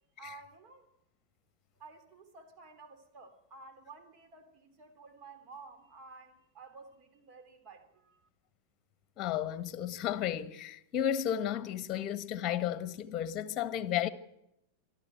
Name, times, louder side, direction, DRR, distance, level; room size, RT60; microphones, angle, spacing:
voice 1, 0.2-0.9 1.7-8.3, right 4 dB, 35° right, 3.3 m, -53 dB
voice 2, 9.2-14.1, left 10 dB, 35° left, 1.3 m, -33 dB
24.5 x 13.0 x 9.0 m
figure-of-eight pair, 90°, 0 cm